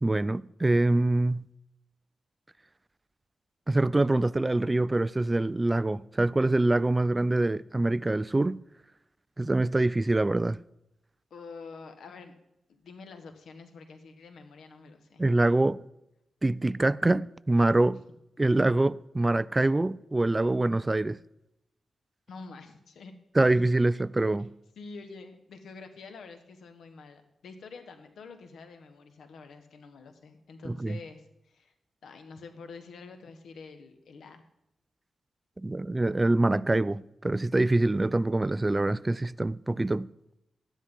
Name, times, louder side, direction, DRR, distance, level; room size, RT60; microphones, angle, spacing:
voice 1, 0.0-1.5 3.7-8.6 9.4-10.6 15.2-15.8 16.4-18.0 18.4-21.2 23.4-24.5 30.6-31.0 35.6-40.1, right 2 dB, 20° right, 0.3 m, -25 dB
voice 2, 11.3-12.4 12.7-15.2 22.3-23.1 24.8-31.7 32.0-34.4, left 4 dB, 85° left, 1.3 m, -47 dB
12.5 x 10.0 x 3.8 m
cardioid pair, 85°, 0 cm